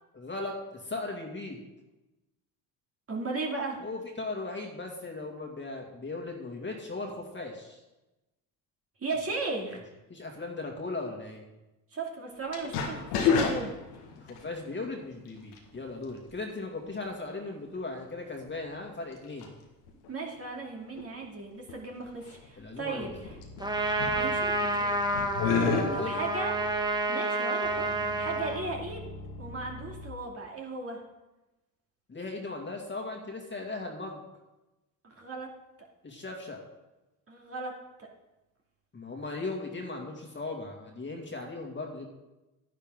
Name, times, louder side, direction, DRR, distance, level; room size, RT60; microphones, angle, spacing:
voice 1, 0.1-1.6 3.8-7.8 10.1-11.4 14.2-19.5 22.6-23.1 25.7-26.2 32.1-34.2 36.0-36.6 38.9-42.1, left 3 dB, 25° left, 1 dB, 2.2 m, -37 dB
voice 2, 3.1-3.8 9.0-9.8 11.9-13.8 20.1-23.4 24.1-25.0 25.9-26.5 27.1-27.9 28.2-29.0 29.4-31.0 35.0-35.5 37.3-38.1, right 3 dB, 30° right, 0 dB, 2.5 m, -36 dB
sound 1, 12.5-14.4 15.5-15.8 16.3-16.4 18.4-18.5 19.4-19.5 19.9-20.1 21.0-21.1 21.7-21.8 22.1-22.6 23.1-23.6 24.0-24.8 25.1-25.8, left 6 dB, 85° left, 1.7 m, -28 dB
sound 2, 23.0-27.1 27.6-30.1, left 1 dB, 45° left, 2.0 m, -46 dB
Trumpet, 23.6-28.6, right 2 dB, 10° right, 1.2 m, -29 dB
10.5 x 9.9 x 3.7 m, 1.0 s
supercardioid pair, 80°, 45 cm